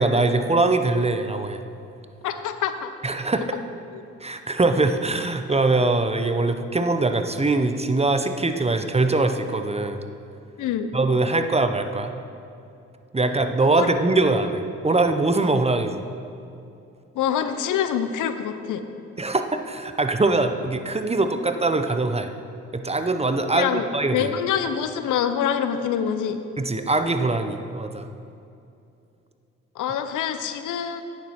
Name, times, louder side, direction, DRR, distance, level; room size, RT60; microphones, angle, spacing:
voice 1, 0.0-1.6 3.0-3.4 4.2-10.0 10.9-12.1 13.1-16.0 19.2-22.3 22.7-24.3 26.6-28.1, right 2 dB, 20° right, 8 dB, 0.8 m, -22 dB
voice 2, 2.2-2.9 3.9-4.0 10.6-10.9 13.7-13.9 17.1-18.9 23.5-26.4 29.7-31.0, left 8 dB, 70° left, 9 dB, 0.7 m, -26 dB
9.3 x 7.0 x 5.7 m, 2.6 s
supercardioid pair, 50°, 31 cm